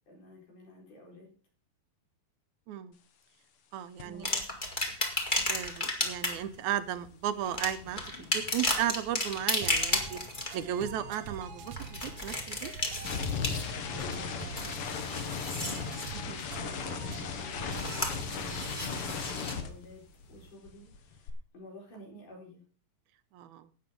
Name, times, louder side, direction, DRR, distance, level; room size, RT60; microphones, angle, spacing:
voice 1, 0.0-1.3 4.0-4.4 13.9-15.7 16.5-16.9 17.3-20.0 20.3-22.6, left 1 dB, 85° left, -1 dB, 6.1 m, -52 dB
voice 2, 3.7-4.3 5.5-8.0 8.3-10.2 10.5-12.7 16.1-16.4 23.3-23.7, right 10 dB, 75° right, 12 dB, 2.1 m, -35 dB
sound 1, 4.0-4.2 4.5-8.9 9.1-20.4 20.6-21.3, left 6 dB, 60° left, 1.7 m, -39 dB
sound 2, 4.2-6.5 7.5-10.6 11.7-13.9 14.3-16.2 17.7-19.6 20.4-20.5, left 1 dB, 20° left, 1.8 m, -33 dB
sound 3, 9.6-19.2, right 6 dB, 60° right, 1.3 m, -45 dB
12.0 x 8.8 x 5.2 m, 0.40 s
omnidirectional pair, 3.5 m